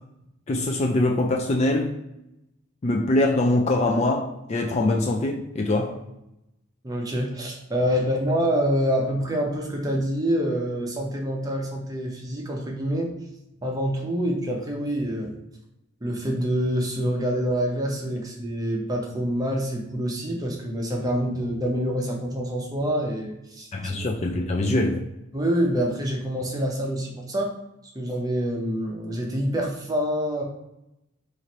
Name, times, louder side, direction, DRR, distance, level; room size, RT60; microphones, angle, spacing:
voice 1, 0.5-2.0 2.8-6.0 23.7-25.0, left 2 dB, 30° left, 1 dB, 0.3 m, -23 dB
voice 2, 6.8-13.1 13.6-15.4 16.0-23.9 24.6-24.7 25.3-27.5 27.9-30.4, equal, 20° right, 0 dB, 0.6 m, -26 dB
3.1 x 2.5 x 4.1 m, 0.87 s
head